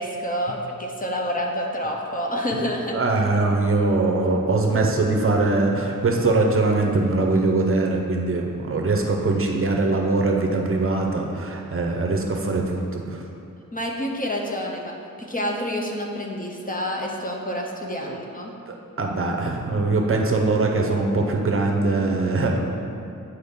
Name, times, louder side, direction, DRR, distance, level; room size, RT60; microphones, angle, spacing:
voice 1, 0.0-3.0 13.7-18.5, equal, 25° left, 0 dB, 0.5 m, -28 dB
voice 2, 2.9-13.2 18.1-18.2 18.7-22.6, right 3 dB, 40° right, 1 dB, 0.6 m, -22 dB
8.0 x 4.6 x 3.6 m, 2.7 s
wide cardioid pair, 160°, 33 cm